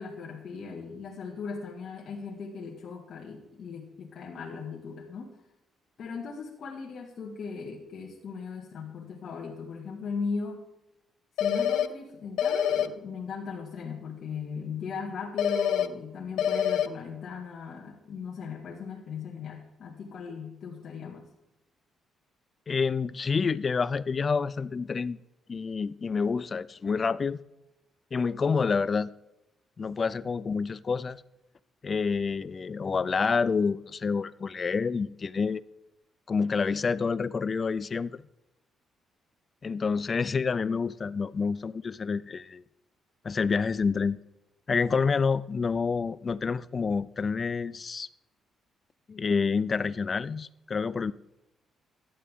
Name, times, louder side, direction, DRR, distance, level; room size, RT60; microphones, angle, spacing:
voice 1, 0.0-5.3 6.0-10.7 11.4-21.3, left 5 dB, 60° left, -1 dB, 1.9 m, -38 dB
sound 1, 11.4-11.9 12.4-12.9 15.4-15.9 16.4-16.9, left 9 dB, 85° left, 0.6 m, -25 dB
voice 2, 22.7-25.2 25.5-27.4 28.1-29.1 29.8-31.2 31.8-35.6 36.3-38.2 39.6-42.6 43.2-44.2 44.7-48.1 49.1-51.1, left 5 dB, 40° left, 19 dB, 0.5 m, -28 dB
14.5 x 11.0 x 3.7 m, 0.91 s
cardioid pair, 90°, 0 cm